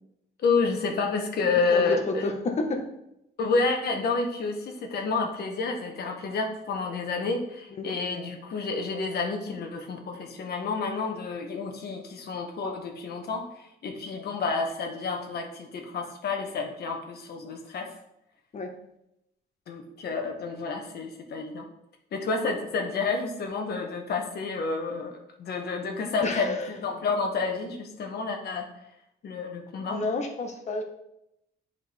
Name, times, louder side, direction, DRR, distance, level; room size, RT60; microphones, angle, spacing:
voice 1, 0.4-2.3 3.4-17.9 19.7-21.7 22.1-25.1 25.4-28.7 29.2-30.0, left 4 dB, 65° left, 3 dB, 1.3 m, -29 dB
voice 2, 1.7-2.9 7.8-7.9 18.5-18.7 26.2-26.7 29.8-30.8, left 3 dB, 40° left, 3 dB, 1.2 m, -30 dB
10.5 x 5.0 x 3.5 m, 0.82 s
cardioid pair, 135°, 18 cm